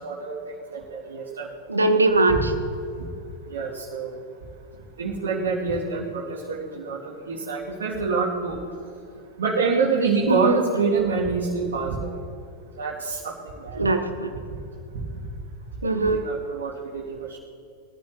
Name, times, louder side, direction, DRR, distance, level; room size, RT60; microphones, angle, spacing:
voice 1, 0.0-1.5 3.0-3.1 3.5-4.2 5.0-8.6 9.4-12.2 12.8-13.9 14.9-15.0 15.8-17.4, right 4 dB, 60° right, -6 dB, 2.4 m, -27 dB
voice 2, 1.7-2.6 10.3-10.6 13.8-14.3 15.8-16.2, right 2 dB, 80° right, 7 dB, 1.2 m, -21 dB
23.5 x 15.0 x 3.0 m, 2.7 s
figure-of-eight pair, 90°, 0 cm